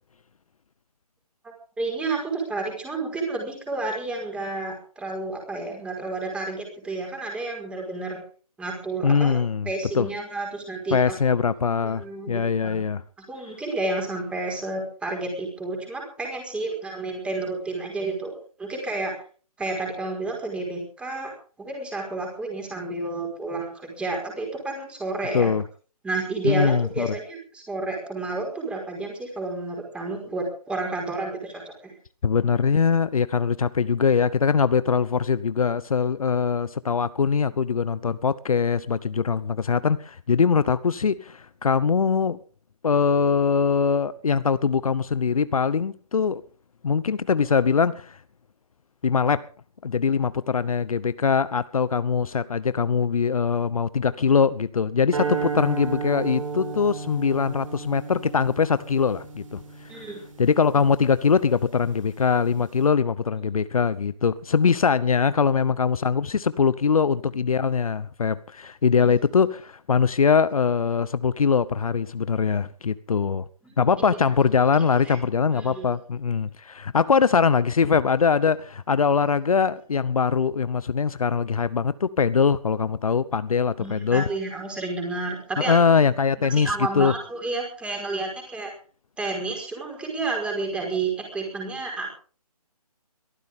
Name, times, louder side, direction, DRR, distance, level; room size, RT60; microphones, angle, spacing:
voice 1, 1.8-8.2 8.6-9.4 9.6-11.0 11.8-12.9 13.3-19.1 19.6-21.3 21.6-25.5 26.0-31.9 59.9-60.2 69.0-69.1 73.6-73.8 75.0-75.2 75.5-75.9 83.8-85.7 86.4-88.7 89.2-92.1, right 3 dB, 5° right, 5.1 m, -30 dB
voice 2, 9.0-9.7 9.9-10.1 10.9-13.0 25.3-25.6 26.4-27.2 32.2-42.4 42.8-46.4 46.8-48.2 49.0-49.5 49.8-60.1 60.4-73.4 73.8-84.3 85.6-87.1, left 6 dB, 65° left, 1.0 m, -22 dB
sound 1, 55.1-61.5, right 5 dB, 55° right, 7.9 m, -33 dB
22.5 x 14.5 x 3.8 m
figure-of-eight pair, 150°, 20 cm